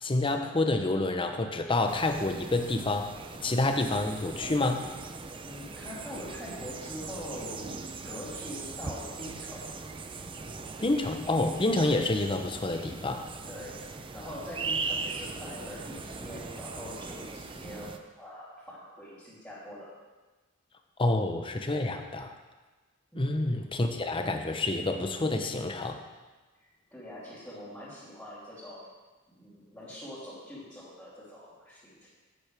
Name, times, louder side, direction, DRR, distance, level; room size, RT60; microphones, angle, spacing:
voice 1, 0.0-3.1 3.4-4.9 10.8-13.3 21.0-22.3 23.2-26.0, left 2 dB, 25° left, 5 dB, 0.7 m, -28 dB
sound 1, 1.9-18.0, right 4 dB, 25° right, 0.5 m, -40 dB
voice 2, 5.4-9.7 13.4-13.8 14.1-19.9 23.1-23.3 26.9-28.9 29.3-32.1, equal, 5° left, -12 dB, 3.0 m, -43 dB
10.5 x 8.8 x 3.4 m, 1.2 s
head